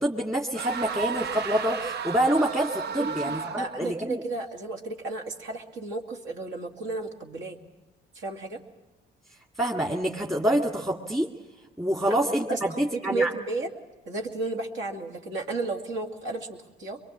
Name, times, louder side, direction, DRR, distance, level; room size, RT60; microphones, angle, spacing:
voice 1, 0.0-4.2 9.6-11.3 11.8-13.3, right 1 dB, 15° right, 0 dB, 2.0 m, -26 dB
sound 1, 0.5-3.9, right 6 dB, 55° right, 0.7 m, -33 dB
voice 2, 3.0-7.6 8.1-8.6 12.5-13.7 14.1-17.0, right 3 dB, 75° right, 2 dB, 2.5 m, -33 dB
23.5 x 23.0 x 7.3 m, 1.1 s
cardioid pair, 90°, 20 cm